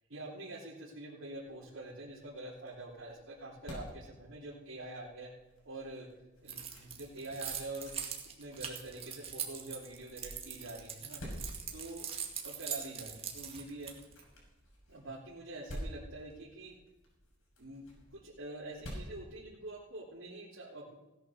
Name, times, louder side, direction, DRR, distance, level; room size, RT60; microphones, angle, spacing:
voice 1, 0.1-5.3 5.6-6.1 6.4-7.9 8.4-11.2 11.7-12.1 12.4-13.9 14.9-16.7 17.6-17.9 18.1-20.9, right 2 dB, 75° right, -8 dB, 3.2 m, -45 dB
sound 1, 2.2-20.1, equal, 80° left, 6.5 m, -51 dB
Keys jangling, 6.5-14.2, right 8 dB, 30° right, 2.1 m, -41 dB
17.0 x 10.5 x 6.4 m, 1.1 s
head